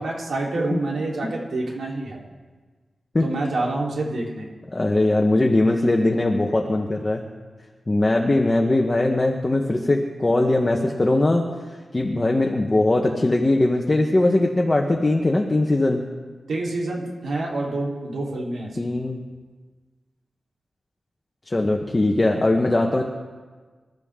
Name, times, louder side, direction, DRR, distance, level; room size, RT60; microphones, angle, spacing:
voice 1, 0.0-2.2 3.2-4.5 16.5-19.0, right 2 dB, 80° right, -3 dB, 3.8 m, -27 dB
voice 2, 4.7-7.2 7.9-11.4 11.9-16.0 18.8-19.2 21.5-23.0, left 2 dB, 20° left, 1 dB, 1.1 m, -20 dB
27.0 x 13.5 x 3.7 m, 1.4 s
wide cardioid pair, 155°, 0 cm